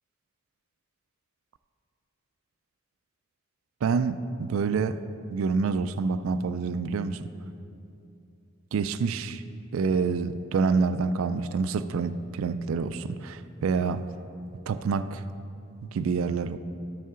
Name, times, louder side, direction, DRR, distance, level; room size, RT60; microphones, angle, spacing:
voice 1, 3.8-5.0 5.3-7.3 8.7-9.4 9.7-14.0 14.7-15.2 15.8-16.6, right 5 dB, 75° right, 12 dB, 0.3 m, -27 dB
13.0 x 5.5 x 3.7 m, 2.6 s
head